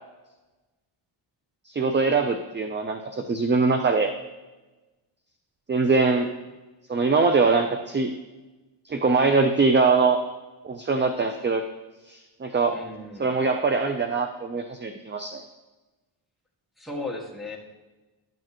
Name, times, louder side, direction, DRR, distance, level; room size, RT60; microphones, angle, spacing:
voice 1, 1.7-4.1 5.7-6.3 6.9-8.1 8.8-10.2 10.6-11.6 12.1-12.8 13.2-15.4, right 4 dB, 25° right, 6 dB, 0.5 m, -22 dB
voice 2, 12.7-13.3 16.8-17.6, left 2 dB, ahead, 0 dB, 1.7 m, -35 dB
11.5 x 6.6 x 3.0 m, 1.1 s
cardioid pair, 90°, 50 cm